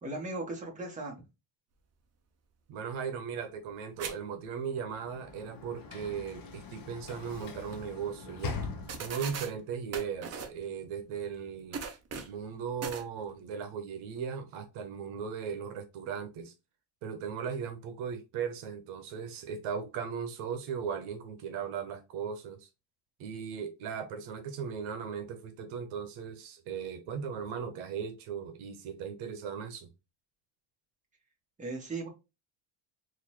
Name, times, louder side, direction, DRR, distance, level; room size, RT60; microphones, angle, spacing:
voice 1, 0.0-1.2 31.6-32.1, right 2 dB, 15° right, 1.4 m, -37 dB
voice 2, 2.7-8.6 9.0-11.8 12.2-16.5 17.0-22.7 23.2-29.9, right 7 dB, 80° right, 0.9 m, -37 dB
sound 1, 4.0-4.1 4.4-4.5 7.3-7.4 7.7-7.8 8.6-8.7 8.9-9.5 9.9-10.6 11.7-12.4 12.8-13.0, right 5 dB, 30° right, 0.6 m, -38 dB
Sliding door / Slam, 4.7-9.5, left 4 dB, 45° left, 0.8 m, -42 dB
3.9 x 2.6 x 3.0 m
cardioid pair, 130°, 49 cm